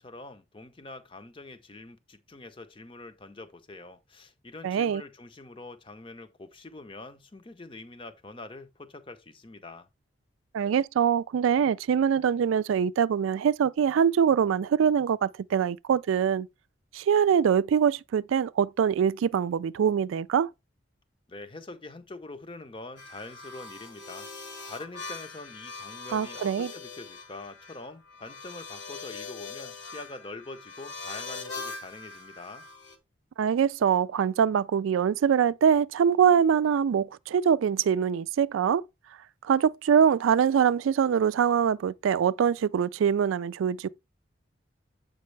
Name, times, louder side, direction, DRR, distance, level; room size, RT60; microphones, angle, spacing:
voice 1, 0.0-9.9 21.3-24.3 24.7-32.7, left 2 dB, 25° left, 0.6 m, -44 dB
voice 2, 4.6-5.0 10.5-16.5 16.9-20.5 26.1-26.7 33.4-38.8 39.4-43.9, right 7 dB, 90° right, 0.3 m, -24 dB
sound 1, 23.0-33.0, left 4 dB, 65° left, 1.2 m, -42 dB
7.6 x 5.2 x 3.2 m
head